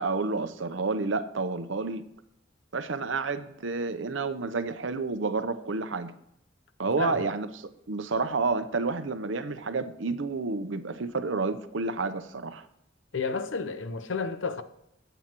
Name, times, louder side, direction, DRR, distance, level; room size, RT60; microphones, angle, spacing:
voice 1, 0.0-2.0 2.7-6.1 6.8-12.7, right 3 dB, 80° right, 0.8 m, -30 dB
voice 2, 6.8-7.2 13.1-14.6, left 4 dB, 80° left, 0.8 m, -31 dB
18.5 x 8.1 x 3.1 m
head